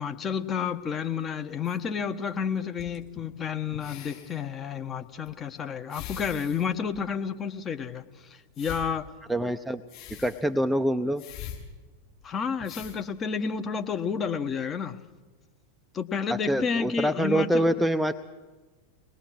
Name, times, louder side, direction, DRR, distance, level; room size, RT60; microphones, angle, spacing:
voice 1, 0.0-8.0 8.6-9.1 12.2-15.0 15.9-17.7, left 6 dB, 25° left, 1.2 m, -30 dB
sound 1, 1.6-1.8 2.8-3.2 3.7-4.4 5.3-5.4 5.9-6.7 6.9-7.0 8.5-8.9 9.9-10.4 11.2-11.6 12.2-12.3 12.6-13.0 13.9-14.0, left 9 dB, 40° left, 6.7 m, -42 dB
voice 2, 9.3-9.8 10.1-11.2 16.3-18.1, right 1 dB, 5° right, 0.7 m, -25 dB
24.0 x 19.5 x 6.5 m
figure-of-eight pair, 90°, 0 cm